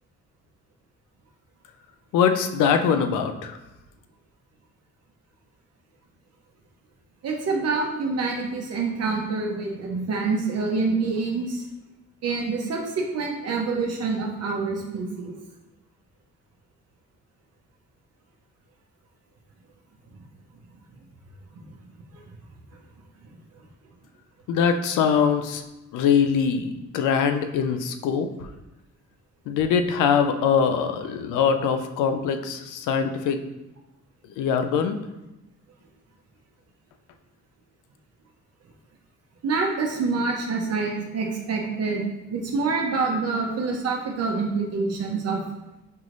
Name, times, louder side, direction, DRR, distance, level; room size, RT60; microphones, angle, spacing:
voice 1, 2.1-3.6 24.5-25.6 25.9-28.5 29.5-33.4 34.4-35.0, left 7 dB, 90° left, 8 dB, 0.5 m, -22 dB
voice 2, 7.2-11.6 12.2-15.3 39.4-45.4, right 4 dB, 55° right, 0 dB, 0.8 m, -26 dB
5.5 x 3.0 x 2.6 m, 0.98 s
cardioid pair, 90°, 30 cm